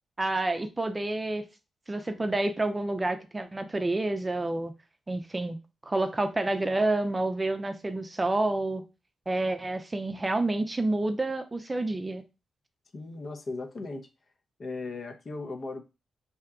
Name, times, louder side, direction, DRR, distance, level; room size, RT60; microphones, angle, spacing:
voice 1, 0.2-1.5 1.9-4.7 5.1-5.6 5.9-8.8 9.3-12.2, right 2 dB, 25° right, 0.5 m, -29 dB
voice 2, 12.9-14.1 14.6-15.8, left 3 dB, 50° left, 0.6 m, -37 dB
2.8 x 2.2 x 3.5 m
supercardioid pair, 50°, 0 cm